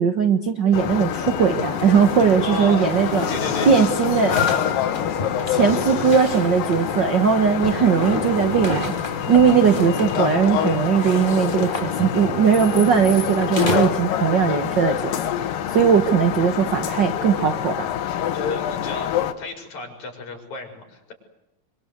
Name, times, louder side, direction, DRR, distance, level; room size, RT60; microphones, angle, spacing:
voice 1, 0.0-3.3 3.6-4.4 5.5-17.9, right 7 dB, 75° right, 8 dB, 1.0 m, -19 dB
sound 1, 0.7-19.3, left 10 dB, 75° left, 3.0 m, -26 dB
sound 2, 1.1-13.9, left 2 dB, 15° left, 2.6 m, -31 dB
voice 2, 2.4-3.8 5.7-5.8 18.3-21.1, left 3 dB, 55° left, 3 dB, 6.7 m, -34 dB
26.5 x 25.0 x 8.2 m, 0.93 s
omnidirectional pair, 4.1 m